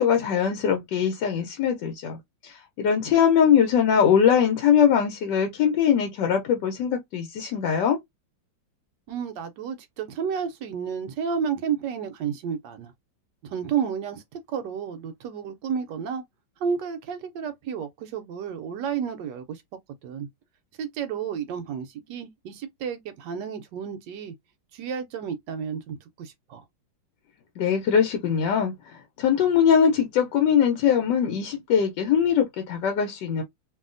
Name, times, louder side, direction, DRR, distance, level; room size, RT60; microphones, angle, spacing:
voice 1, 0.0-8.0 27.6-33.4, left 8 dB, 75° left, 1.2 m, -22 dB
voice 2, 9.1-12.9 13.4-16.2 16.6-19.6 20.0-20.3 20.8-24.3 24.7-26.6, right 7 dB, 75° right, 1.1 m, -31 dB
2.8 x 2.7 x 2.5 m
omnidirectional pair, 2.1 m